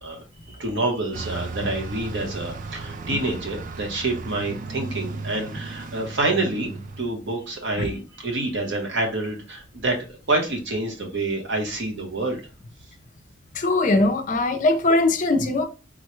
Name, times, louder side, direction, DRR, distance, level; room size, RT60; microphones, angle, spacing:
voice 1, 0.0-12.4, right 2 dB, 55° right, 1.0 m, -27 dB
Bus, 1.1-7.0, right 3 dB, 40° right, 0.3 m, -35 dB
voice 2, 13.5-15.6, left 2 dB, 40° left, 0.4 m, -20 dB
3.8 x 2.2 x 3.0 m
head